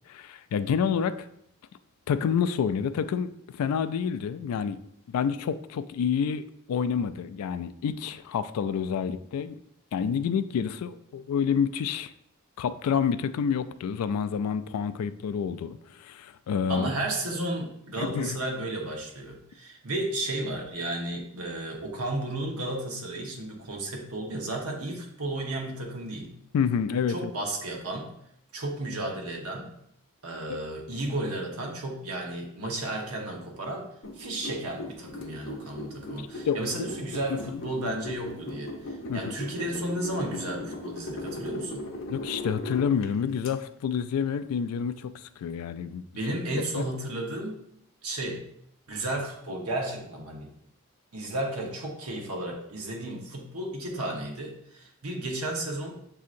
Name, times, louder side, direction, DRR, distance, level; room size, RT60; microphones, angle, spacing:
voice 1, 0.1-1.1 2.1-4.8 5.1-9.6 9.9-12.1 12.6-16.9 18.0-18.4 26.5-27.3 36.5-36.6 37.3-37.6 39.1-39.3 42.1-46.0 46.7-46.8, left 7 dB, 90° left, 12 dB, 0.3 m, -28 dB
voice 2, 16.7-26.3 27.1-28.1 28.5-29.7 30.2-33.9 34.1-41.9 46.1-47.6 48.0-48.5 48.9-50.5 51.1-56.0, right 1 dB, 85° right, 1 dB, 1.0 m, -33 dB
sound 1, 34.0-43.5, left 1 dB, 60° left, 0.7 m, -38 dB
7.3 x 2.8 x 2.5 m, 0.73 s
head